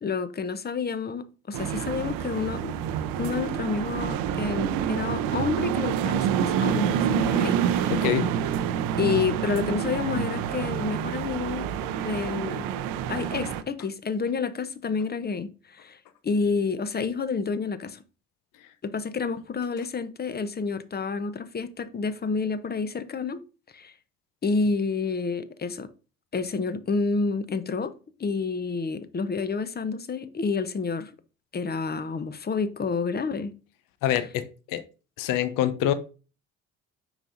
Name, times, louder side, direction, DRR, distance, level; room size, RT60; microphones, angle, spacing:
voice 1, 0.0-2.7 3.2-7.9 9.0-11.7 12.0-12.7 13.1-18.0 18.8-23.4 23.7-23.9 24.4-25.9 26.3-27.9 28.2-31.1 31.5-33.5, left 4 dB, 25° left, 0.8 m, -29 dB
Walking in New York City (Lexington Ave), 1.5-13.6, right 9 dB, 65° right, 0.6 m, -27 dB
voice 2, 7.9-8.3 34.0-34.8 35.2-35.9, left 11 dB, 60° left, 0.7 m, -25 dB
7.0 x 5.6 x 2.6 m
hypercardioid pair, 45°, 37 cm